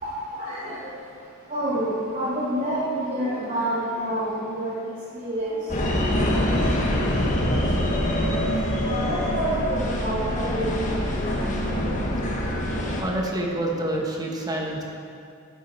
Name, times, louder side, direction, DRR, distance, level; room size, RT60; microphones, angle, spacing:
voice 1, 0.0-0.9 1.5-4.7 5.1-5.6 9.0-11.0, right 1 dB, 35° right, -12 dB, 2.8 m, -28 dB
sound 1, 5.7-13.0, equal, 35° left, 1.4 m, -24 dB
voice 2, 13.0-14.8, right 1 dB, 20° right, -1 dB, 1.1 m, -27 dB
10.5 x 9.0 x 4.4 m, 2.3 s
head